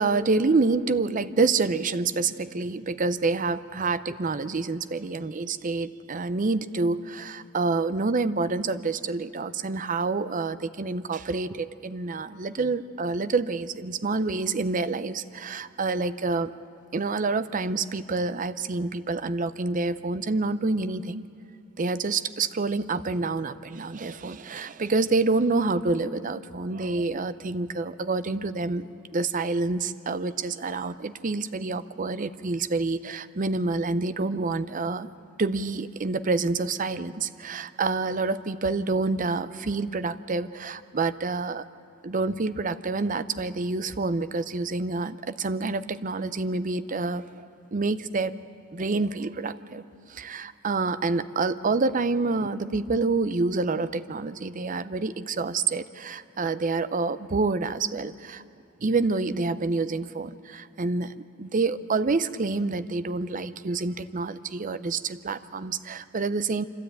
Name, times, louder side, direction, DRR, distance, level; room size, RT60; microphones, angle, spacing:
voice 1, 0.0-16.5 16.9-21.2 21.8-28.9 29.1-35.1 35.4-41.6 42.0-48.4 48.7-49.8 50.1-58.4 58.8-66.6, right 3 dB, 40° right, 13 dB, 0.6 m, -27 dB
26.0 x 13.0 x 8.9 m, 2.6 s
head